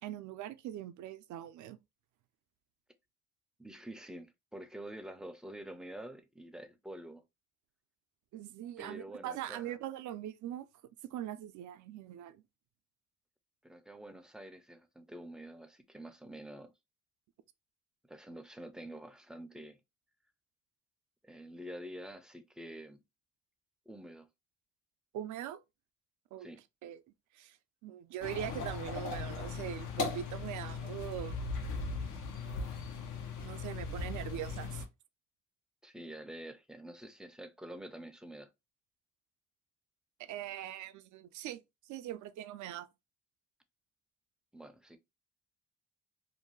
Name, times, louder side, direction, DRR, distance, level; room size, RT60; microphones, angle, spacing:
voice 1, 0.0-1.8 8.3-10.7 11.1-12.4 25.1-25.6 26.3-26.5 26.8-27.0 27.3-27.6 27.8-31.4 33.4-34.8 40.2-42.9, right 11 dB, 75° right, 0.4 m, -42 dB
voice 2, 3.6-7.2 8.8-9.8 13.6-16.7 18.1-19.8 21.2-23.0 23.9-24.3 26.4-26.6 35.8-38.5 44.5-45.0, right 1 dB, ahead, 0.4 m, -47 dB
sound 1, 28.2-34.9, left 4 dB, 85° left, 0.7 m, -38 dB
2.6 x 2.2 x 3.0 m
cardioid pair, 90°, 30 cm